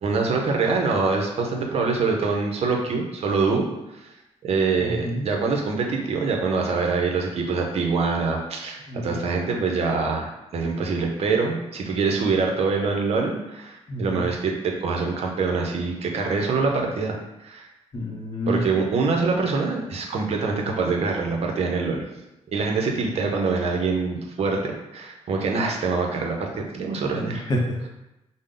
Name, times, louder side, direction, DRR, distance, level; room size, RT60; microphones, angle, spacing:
voice 1, 0.0-3.7 3.9-4.1 4.4-17.2 17.4-17.7 18.5-22.0 22.5-26.5 26.7-27.4, right 4 dB, 60° right, 1 dB, 0.7 m, -24 dB
voice 2, 4.8-5.2 8.9-9.2 13.9-14.2 17.9-18.6 27.3-27.9, equal, 35° left, 0 dB, 0.6 m, -28 dB
5.1 x 2.0 x 3.7 m, 0.95 s
wide cardioid pair, 150°, 12 cm